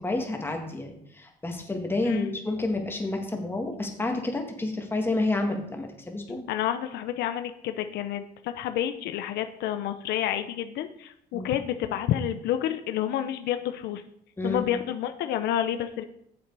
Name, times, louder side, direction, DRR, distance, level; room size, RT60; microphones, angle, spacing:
voice 1, 0.0-6.5 11.3-11.5 14.4-14.7, left 2 dB, 15° left, 3 dB, 1.8 m, -29 dB
voice 2, 6.5-14.0 14.4-16.0, left 11 dB, 80° left, 9 dB, 0.7 m, -29 dB
8.6 x 7.2 x 4.7 m, 0.72 s
cardioid pair, 110°, 17 cm